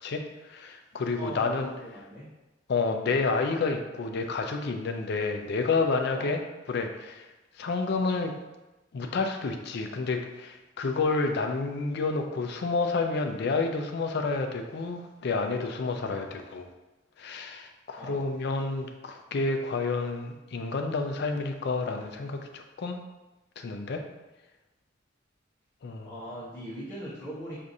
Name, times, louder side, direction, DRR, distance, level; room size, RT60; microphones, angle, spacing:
voice 1, 0.0-1.7 2.7-6.4 6.7-7.3 7.6-8.3 8.9-16.7 17.2-23.0 23.6-24.0 25.8-26.1, left 3 dB, 55° left, 4 dB, 0.4 m, -29 dB
voice 2, 1.1-2.3 6.1-6.3 15.9-16.2 18.0-18.2 26.0-27.6, equal, 15° left, -12 dB, 0.9 m, -40 dB
4.6 x 2.5 x 2.6 m, 1.1 s
head